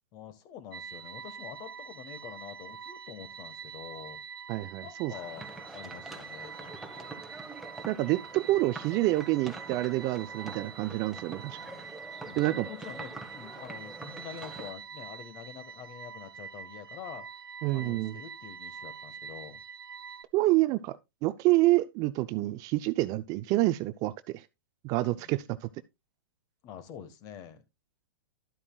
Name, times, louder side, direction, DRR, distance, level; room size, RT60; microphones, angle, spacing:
voice 1, 0.1-4.2 4.8-7.2 11.5-11.9 12.2-17.3 17.7-19.6 25.1-25.3 26.6-27.6, left 9 dB, 35° left, 1.4 m, -46 dB
sound 1, 0.7-20.2, right 6 dB, 90° right, 0.8 m, -45 dB
voice 2, 4.5-5.1 7.9-11.6 12.4-12.7 17.6-18.2 20.3-21.0 21.2-24.4 24.8-25.4, right 18 dB, 30° right, 0.4 m, -27 dB
sound 2, 5.1-14.7, right 2 dB, 5° right, 1.3 m, -45 dB
12.0 x 8.6 x 2.3 m
hypercardioid pair, 130°, 12 cm